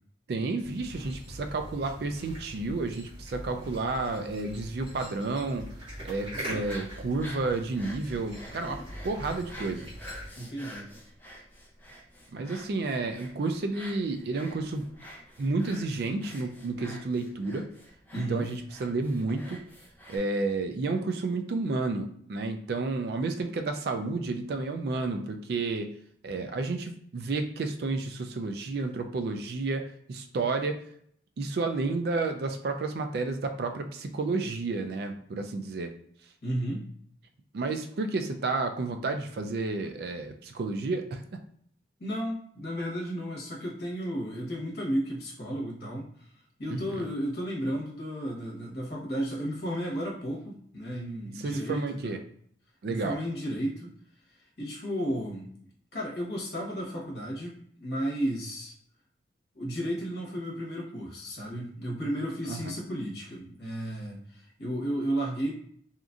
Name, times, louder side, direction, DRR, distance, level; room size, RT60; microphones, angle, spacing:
voice 1, 0.3-5.7 6.0-9.9 12.3-14.8 15.4-17.7 18.1-19.6 20.1-25.9 26.2-30.8 31.4-35.9 37.5-41.4 46.7-47.0 51.4-52.2 52.8-53.2 62.5-62.7, right 3 dB, 55° right, 6 dB, 0.3 m, -31 dB
sound 1, 0.6-10.3, equal, 30° right, 1.1 m, -43 dB
voice 2, 6.3-6.8 10.4-10.9 18.1-18.5 36.4-36.9 42.0-46.1 46.6-52.2 52.9-53.9 54.6-55.5 55.9-58.7 59.5-65.5, equal, 60° left, -3 dB, 1.0 m, -33 dB
sound 2, 6.6-20.2, equal, 10° left, 0.5 m, -48 dB
2.9 x 2.5 x 2.4 m, 0.63 s
head